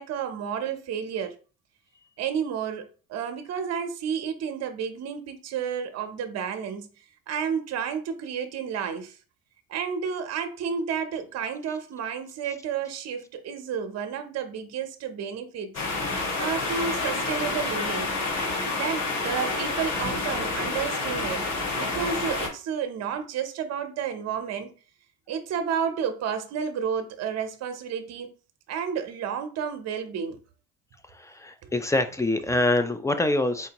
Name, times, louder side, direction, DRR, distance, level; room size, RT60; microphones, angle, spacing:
voice 1, 0.0-1.3 2.2-6.9 7.3-9.2 9.7-15.8 16.1-18.1 18.7-21.5 21.7-24.7 25.3-28.3 28.7-30.4 31.6-31.7, right 7 dB, 50° right, 0.7 m, -31 dB
sound 1, 15.7-22.5, left 3 dB, 50° left, 1.3 m, -28 dB
voice 2, 31.1-33.7, left 2 dB, 10° left, 0.3 m, -25 dB
4.3 x 2.6 x 2.9 m
supercardioid pair, 100°, 34 cm